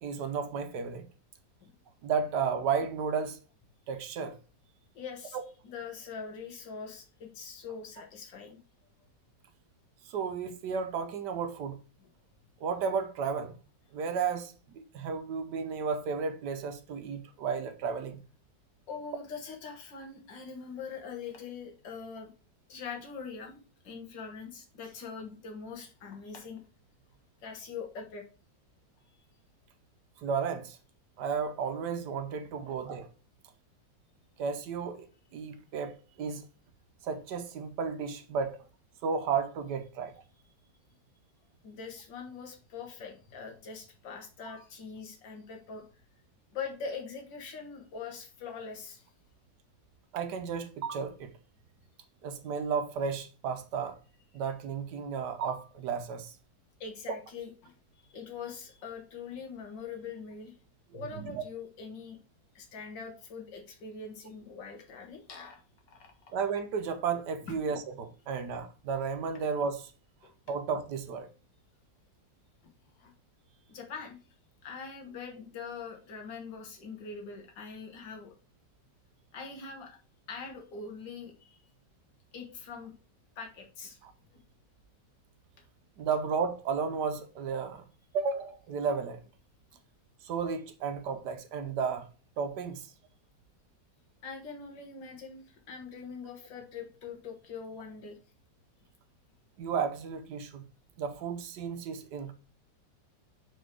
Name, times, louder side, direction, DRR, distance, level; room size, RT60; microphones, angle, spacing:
voice 1, 0.0-1.1 2.0-3.4 3.9-4.4 5.3-5.4 10.1-11.8 12.6-13.6 13.9-18.2 30.2-30.8 31.2-33.1 34.4-35.1 35.3-36.4 37.0-38.6 39.0-40.1 44.5-44.6 50.1-51.3 52.2-54.0 54.3-56.4 60.9-61.4 66.3-69.9 70.5-71.3 84.0-84.1 86.0-87.8 88.1-89.2 90.2-92.1 92.4-92.9 99.6-100.6 101.0-102.3, right 6 dB, 70° right, 1.3 m, -33 dB
voice 2, 4.9-5.4 5.6-8.6 12.0-12.1 18.9-22.3 22.7-23.6 23.8-26.6 27.4-28.2 41.6-45.8 46.5-49.1 56.8-60.5 60.9-62.2 62.6-65.6 65.9-66.0 70.2-70.3 73.0-73.1 73.7-74.2 74.6-78.3 79.3-80.0 80.3-81.6 82.3-82.9 83.4-84.0 84.3-84.4 94.2-98.2, left 5 dB, 80° left, 2.0 m, -43 dB
4.5 x 4.5 x 4.5 m
omnidirectional pair, 1.9 m